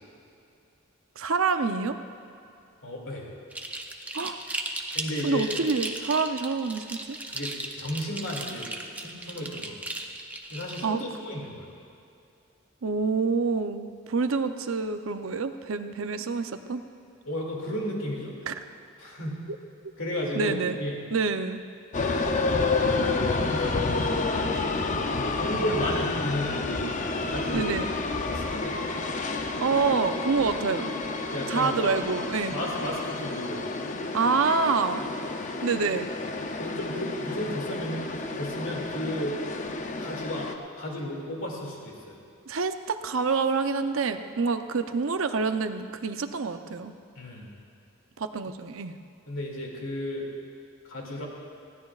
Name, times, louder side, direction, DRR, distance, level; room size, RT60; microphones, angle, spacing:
voice 1, 1.2-2.0 4.1-4.4 5.2-7.2 10.8-11.0 12.8-16.8 18.5-18.6 20.3-20.8 21.1-21.6 27.5-27.9 29.6-30.9 31.5-32.5 34.1-35.0 35.6-36.1 42.5-46.9 48.2-49.0, right 4 dB, 75° right, 8 dB, 0.6 m, -27 dB
voice 2, 2.8-3.3 4.9-5.5 7.3-8.7 8.9-9.8 10.5-11.7 17.2-18.4 19.0-19.4 20.0-21.0 22.7-23.7 24.3-24.8 25.4-26.9 27.2-27.7 28.3-28.8 31.3-31.9 32.5-33.6 36.6-39.4 40.0-40.5 40.8-42.2 47.1-47.5 49.3-50.3 50.9-51.2, equal, 70° left, -2 dB, 2.5 m, -33 dB
sound 1, 3.5-10.9, right 2 dB, 5° right, 0.6 m, -36 dB
sound 2, 21.9-40.6, left 3 dB, 35° left, 0.6 m, -30 dB
19.5 x 15.5 x 2.4 m, 2.5 s
head